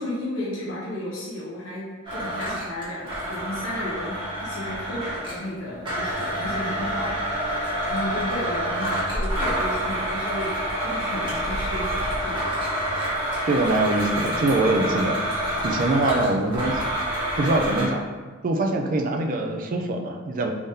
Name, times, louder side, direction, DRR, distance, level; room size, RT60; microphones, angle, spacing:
voice 1, 0.0-12.6, left 1 dB, 90° left, -7 dB, 1.0 m, -33 dB
Domestic sounds home sounds, 2.0-5.4 5.8-17.9, right 1 dB, 25° right, 1.2 m, -27 dB
voice 2, 13.5-15.2 15.6-16.8 17.4-18.0 18.4-20.5, right 2 dB, 45° right, 3 dB, 0.4 m, -23 dB
3.6 x 3.5 x 2.7 m, 1.4 s
head